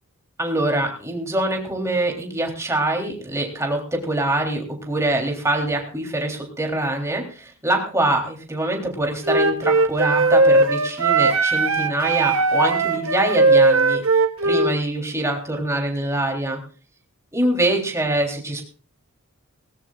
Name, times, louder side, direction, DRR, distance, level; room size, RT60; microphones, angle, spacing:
voice 1, 0.4-16.6 17.3-18.7, right 1 dB, 15° right, 1 dB, 3.5 m, -24 dB
Wind instrument woodwind instrument, 9.2-14.7, right 3 dB, 65° right, 1.7 m, -18 dB
20.5 x 19.5 x 2.5 m, 0.39 s
head